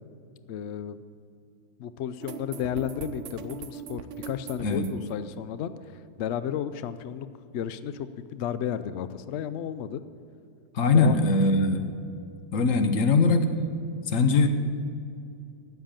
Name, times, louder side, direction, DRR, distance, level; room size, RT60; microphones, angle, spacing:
voice 1, 0.5-1.0 1.8-7.3 7.5-10.0 10.9-11.2 11.4-11.5, left 9 dB, 80° left, 12 dB, 0.6 m, -33 dB
sound 1, 2.2-6.0, right 7 dB, 60° right, 0.9 m, -41 dB
voice 2, 10.7-11.9 12.5-13.5 14.1-14.5, left 3 dB, 55° left, 8 dB, 1.2 m, -21 dB
12.5 x 8.1 x 8.8 m, 2.5 s
omnidirectional pair, 1.7 m